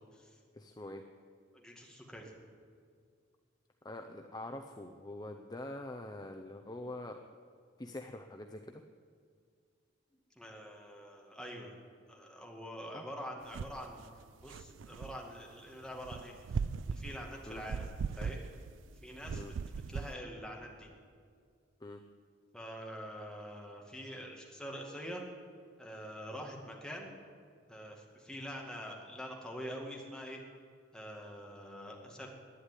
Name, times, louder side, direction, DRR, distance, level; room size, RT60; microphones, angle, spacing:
voice 1, 0.5-1.1 3.8-7.2 7.8-8.8 12.9-13.1 17.5-17.6 19.3-19.5 21.8-22.0, left 1 dB, 20° left, 4 dB, 0.6 m, -44 dB
voice 2, 1.5-2.3 10.4-11.7 12.1-14.0 14.4-18.4 19.0-19.4 19.9-20.9 22.5-25.2 25.8-27.1 27.7-30.4 30.9-32.3, equal, 5° left, -1 dB, 2.1 m, -45 dB
sound 1, 13.5-13.8 14.2-15.2 16.0-18.9 19.2-20.1, right 5 dB, 75° right, 0.4 m, -38 dB
11.0 x 10.0 x 9.9 m, 2.1 s
head